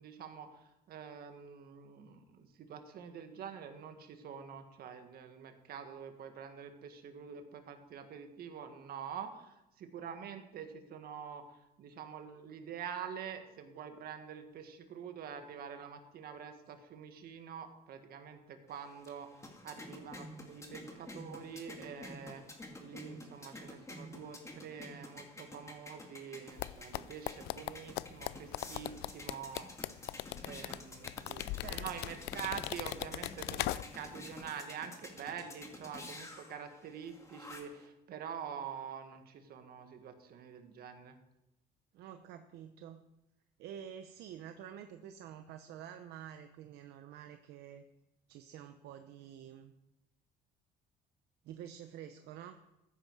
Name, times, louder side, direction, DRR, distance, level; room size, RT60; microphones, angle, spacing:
voice 1, 0.0-11.4 11.8-22.4 22.8-29.7 30.4-31.5 31.7-41.2, right 7 dB, 65° right, 6 dB, 1.7 m, -46 dB
sound 1, 18.7-37.9, left 1 dB, 15° left, 2.2 m, -50 dB
sound 2, 26.6-34.1 34.4-34.6, left 17 dB, 85° left, 0.4 m, -39 dB
voice 2, 31.0-31.9 41.9-43.0 43.6-47.8 48.3-49.7 51.4-52.6, right 9 dB, 80° right, 8 dB, 0.8 m, -49 dB
14.5 x 9.7 x 4.7 m, 0.92 s
cardioid pair, 110°, 17 cm